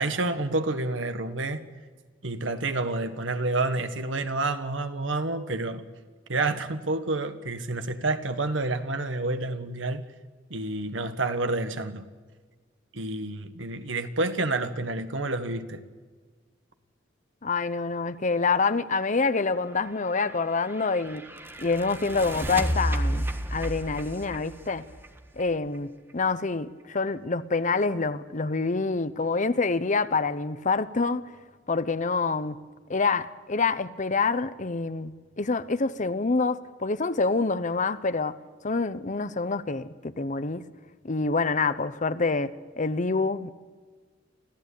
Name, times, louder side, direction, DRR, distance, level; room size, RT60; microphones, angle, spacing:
voice 1, 0.0-1.6 2.2-5.8 6.3-10.0 10.5-12.0 12.9-15.8, right 2 dB, 75° right, 1.6 m, -29 dB
voice 2, 17.4-21.2 21.6-24.9 25.4-31.2 31.7-32.6 32.9-38.4 38.6-40.6 41.0-43.5, left 4 dB, 40° left, 0.8 m, -27 dB
sound 1, 20.0-25.8, equal, 10° right, 1.4 m, -32 dB
25.0 x 15.5 x 8.4 m
head